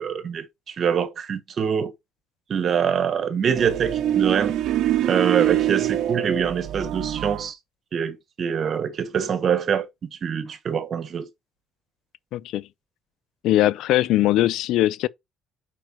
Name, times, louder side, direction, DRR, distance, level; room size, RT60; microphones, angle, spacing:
voice 1, 0.0-1.9 2.5-4.6 5.0-7.6 7.9-11.3, right 7 dB, 45° right, 1.2 m, -25 dB
sound 1, 3.6-7.5, right 12 dB, 70° right, 0.6 m, -24 dB
voice 2, 12.3-12.7 13.4-15.1, left 14 dB, 75° left, 0.3 m, -20 dB
4.9 x 4.7 x 4.5 m
cardioid pair, 115°, 0 cm